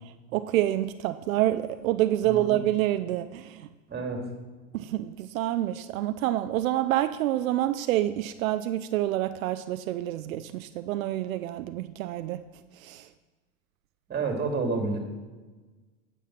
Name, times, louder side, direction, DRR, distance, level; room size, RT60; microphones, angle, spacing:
voice 1, 0.3-3.7 4.7-12.4 12.8-13.1, right 13 dB, 85° right, 11 dB, 0.5 m, -27 dB
voice 2, 2.2-2.6 3.9-4.3 14.1-15.0, right 3 dB, 25° right, 2 dB, 2.6 m, -29 dB
10.0 x 6.8 x 5.9 m, 1.3 s
hypercardioid pair, 95°, 40 cm